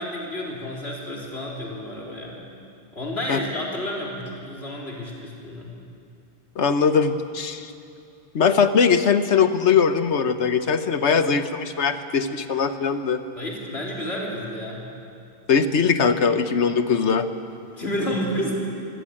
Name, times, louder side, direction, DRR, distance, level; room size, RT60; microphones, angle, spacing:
voice 1, 0.0-2.4 2.9-5.7 13.4-14.8 17.7-18.5, equal, 65° left, -3 dB, 4.0 m, -30 dB
voice 2, 6.6-7.7 8.3-13.2 15.5-17.2, left 6 dB, 80° left, 10 dB, 1.4 m, -20 dB
24.0 x 17.5 x 8.7 m, 2.5 s
omnidirectional pair, 1.1 m